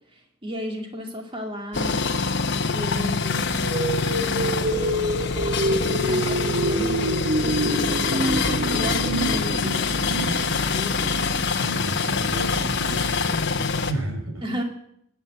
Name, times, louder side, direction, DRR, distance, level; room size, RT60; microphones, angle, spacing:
voice 1, 0.1-2.1 2.6-3.7 4.1-5.2 5.8-8.4 8.7-9.9 10.6-11.3 14.4-14.6, equal, 25° right, 2 dB, 2.5 m, -34 dB
sound 1, 1.7-13.9, left 4 dB, 55° left, 1.1 m, -25 dB
sound 2, 3.3-12.2, right 1 dB, 55° right, 2.3 m, -27 dB
voice 2, 11.6-14.4, right 1 dB, 90° right, 2 dB, 4.9 m, -33 dB
19.5 x 9.0 x 7.8 m, 0.72 s
head